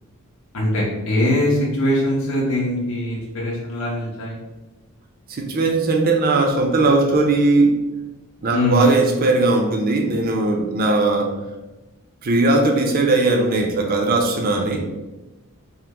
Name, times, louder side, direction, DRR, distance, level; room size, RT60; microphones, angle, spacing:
voice 1, 0.5-4.4 8.5-8.8, left 1 dB, 70° left, -4 dB, 0.6 m, -21 dB
voice 2, 5.3-7.8 8.4-11.4 12.2-14.9, right 2 dB, 40° right, 2 dB, 0.4 m, -18 dB
2.9 x 2.0 x 3.4 m, 1.1 s
head